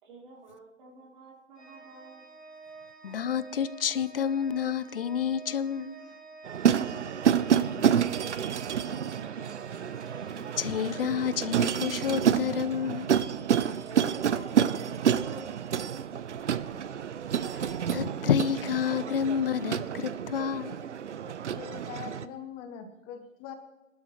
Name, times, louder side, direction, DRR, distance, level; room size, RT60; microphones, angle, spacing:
voice 1, 0.0-2.2 6.6-9.2 13.8-16.3, right 3 dB, 40° right, 3.3 m, -49 dB
Organ, 1.6-12.4, right 3 dB, 85° right, 5.6 m, -50 dB
voice 2, 3.0-6.0 10.2-13.1 17.4-20.8, left 8 dB, 50° left, 0.6 m, -29 dB
sound 1, 6.4-22.3, right 8 dB, 65° right, 0.7 m, -29 dB
voice 3, 21.5-23.5, left 8 dB, 15° left, 0.7 m, -42 dB
21.5 x 12.0 x 3.1 m
figure-of-eight pair, 135°, 38 cm